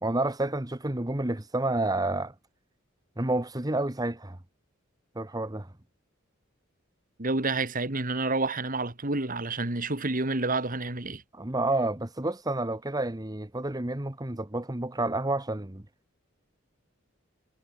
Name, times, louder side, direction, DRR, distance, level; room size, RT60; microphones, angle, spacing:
voice 1, 0.0-2.3 3.2-4.4 5.1-5.7 11.3-15.8, right 2 dB, 20° right, 1.2 m, -29 dB
voice 2, 7.2-11.2, right 3 dB, 45° right, 2.5 m, -29 dB
head